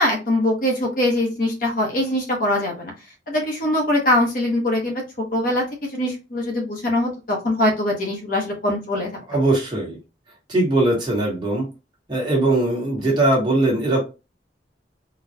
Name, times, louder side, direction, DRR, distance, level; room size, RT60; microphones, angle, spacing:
voice 1, 0.0-2.9 3.3-5.0 5.3-9.1, left 1 dB, 45° left, 0 dB, 0.9 m, -22 dB
voice 2, 9.3-10.0 10.5-11.7 12.1-14.0, right 2 dB, 25° right, -3 dB, 1.3 m, -20 dB
3.9 x 2.2 x 2.7 m, 0.29 s
head